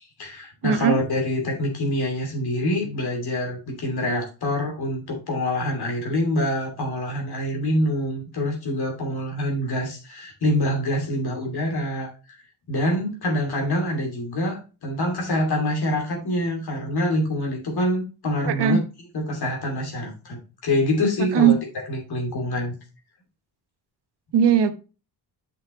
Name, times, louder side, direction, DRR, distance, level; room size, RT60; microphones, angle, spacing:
voice 1, 0.0-12.4 12.7-18.8 19.1-22.7, left 1 dB, 65° left, 1 dB, 2.9 m, -26 dB
voice 2, 0.6-1.0 18.5-18.8 21.3-21.5 24.3-24.7, right 8 dB, 75° right, 11 dB, 1.0 m, -18 dB
7.5 x 5.8 x 3.2 m, 0.32 s
cardioid pair, 80°, 41 cm